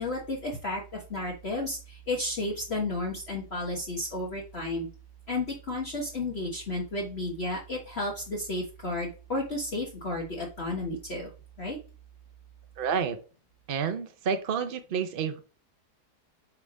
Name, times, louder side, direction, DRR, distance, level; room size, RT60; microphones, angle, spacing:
voice 1, 0.0-4.9 5.3-11.3 11.6-11.8, left 2 dB, 40° left, -2 dB, 1.4 m, -32 dB
voice 2, 12.8-13.2 13.7-15.4, right 6 dB, 65° right, 10 dB, 0.5 m, -29 dB
7.6 x 3.5 x 5.2 m, 0.37 s
omnidirectional pair, 1.7 m